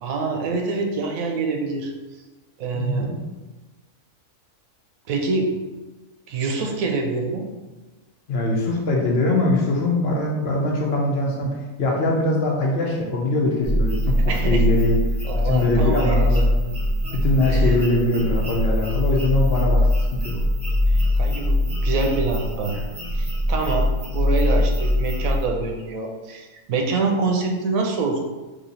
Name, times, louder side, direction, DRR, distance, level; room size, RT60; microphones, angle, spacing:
voice 1, 0.0-1.9 2.6-3.1 5.1-5.5 6.3-7.4 14.3-14.6 15.2-16.3 17.5-17.8 20.9-22.7 23.1-23.9 24.1-28.2, right 3 dB, 90° right, 2 dB, 1.1 m, -25 dB
voice 2, 2.7-3.2 8.3-11.5 11.8-15.0 15.4-16.7 17.2-20.4, left 2 dB, 60° left, -1 dB, 0.7 m, -22 dB
sound 1, 13.6-25.4, left 1 dB, 10° right, 0.5 m, -22 dB
3.1 x 2.7 x 3.9 m, 1.2 s
omnidirectional pair, 1.4 m